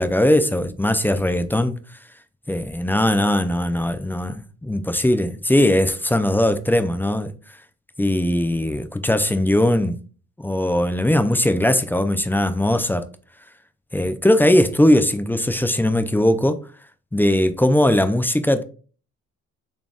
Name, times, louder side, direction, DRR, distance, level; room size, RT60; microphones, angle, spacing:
voice 1, 0.0-1.8 2.5-7.3 8.0-9.9 10.4-13.1 13.9-16.6 17.1-18.6, left 1 dB, 5° left, 0.4 m, -19 dB
4.1 x 3.4 x 2.3 m
cardioid pair, 90°, 30 cm